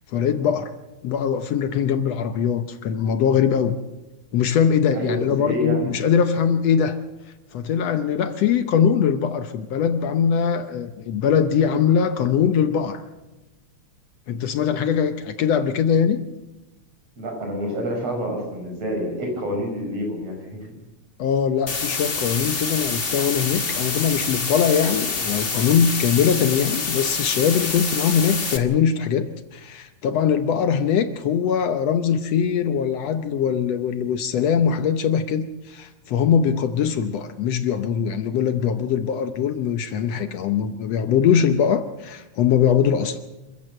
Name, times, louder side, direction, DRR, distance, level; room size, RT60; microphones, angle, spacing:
voice 1, 0.1-0.7 1.0-3.8 4.3-7.0 7.5-13.0 14.3-16.2 21.2-43.2, left 7 dB, 70° left, 9 dB, 1.9 m, -21 dB
voice 2, 4.9-5.9 17.2-20.7, equal, 55° right, 2 dB, 6.2 m, -28 dB
sound 1, 21.7-28.6, left 4 dB, 40° left, 0.8 m, -26 dB
26.5 x 14.5 x 7.6 m, 1.0 s
omnidirectional pair, 3.3 m